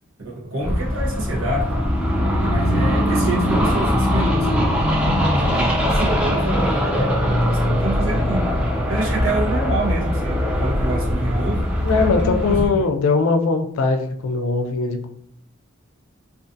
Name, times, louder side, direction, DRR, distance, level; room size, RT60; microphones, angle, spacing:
voice 1, 0.2-1.9 2.4-4.7 5.0-8.5 8.9-12.8, right 1 dB, 80° right, -5 dB, 0.9 m, -27 dB
Super Constellation Flypast, 0.6-12.7, equal, 5° right, 0.3 m, -21 dB
voice 2, 5.5-5.9 11.8-15.1, left 4 dB, 80° left, 5 dB, 0.4 m, -21 dB
2.4 x 2.4 x 2.5 m, 0.68 s
head